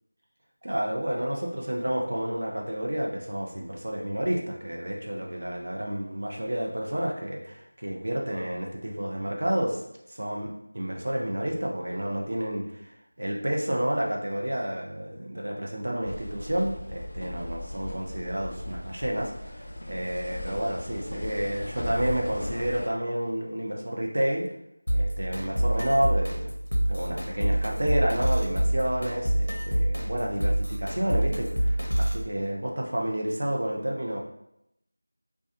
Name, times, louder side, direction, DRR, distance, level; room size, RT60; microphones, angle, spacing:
voice 1, 0.6-9.8 10.1-24.5 24.9-26.5 26.9-34.2, right 1 dB, 55° right, -1 dB, 0.5 m, -30 dB
sound 1, 16.0-22.9, left 1 dB, 40° left, 0.4 m, -37 dB
sound 2, 24.9-32.3, right 1 dB, 85° left, 0.6 m, -27 dB
2.7 x 2.3 x 2.5 m, 0.82 s
figure-of-eight pair, 175°, 0 cm